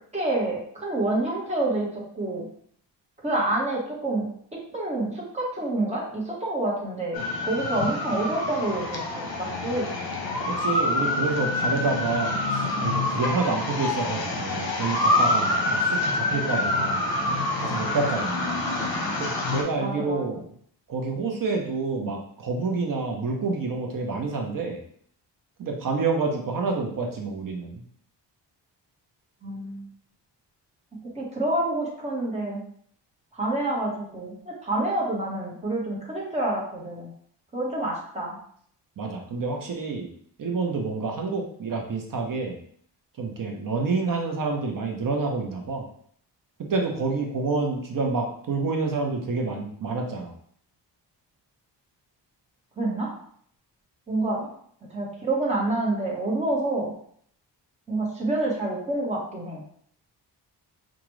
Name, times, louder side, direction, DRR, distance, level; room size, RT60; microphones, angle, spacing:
voice 1, 0.1-1.9 2.1-2.5 3.2-9.9 19.8-20.2 29.4-29.8 31.1-32.6 33.3-37.1 37.5-38.4 52.8-53.1 54.1-54.4 54.9-56.9 57.9-59.6, right 2 dB, 15° right, -4 dB, 1.3 m, -28 dB
sound 1, 7.1-19.6, left 2 dB, 55° left, 0.9 m, -26 dB
voice 2, 10.5-17.0 17.6-18.5 19.2-20.4 20.9-24.8 25.6-27.8 39.0-40.1 40.4-42.6 43.2-45.9 46.6-50.3, right 4 dB, 50° right, 1 dB, 0.8 m, -28 dB
4.9 x 2.5 x 3.1 m, 0.63 s
wide cardioid pair, 135°, 43 cm